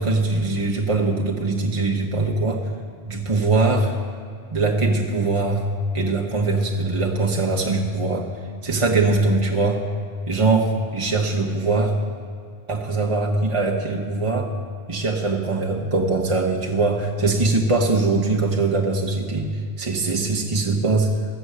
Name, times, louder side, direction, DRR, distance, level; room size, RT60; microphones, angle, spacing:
voice 1, 0.0-2.6 3.0-3.9 4.5-5.7 5.9-8.3 8.6-9.8 10.3-12.0 12.7-14.5 14.9-19.5 19.8-21.1, right 3 dB, 30° right, -1 dB, 1.2 m, -22 dB
14.5 x 7.0 x 8.1 m, 2.2 s
omnidirectional pair, 1.1 m